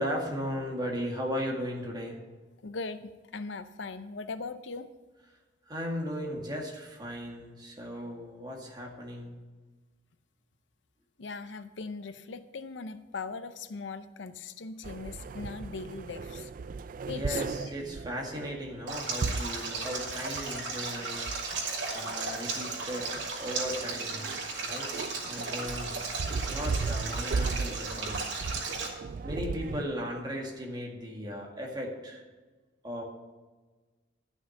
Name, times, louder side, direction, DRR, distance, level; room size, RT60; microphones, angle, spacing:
voice 1, 0.0-2.2 5.7-9.4 17.1-24.2 24.6-24.9 25.2-26.0 26.5-28.4 29.2-32.2 32.8-33.0, equal, 25° right, 0 dB, 2.0 m, -36 dB
voice 2, 2.6-4.9 11.2-16.5 17.1-17.7, left 4 dB, 80° left, 12 dB, 0.6 m, -39 dB
sound 1, 14.8-29.8, right 4 dB, 50° right, 0.3 m, -37 dB
Stream, 18.9-28.9, right 4 dB, 80° right, 2.5 m, -35 dB
12.0 x 6.2 x 6.5 m, 1.3 s
head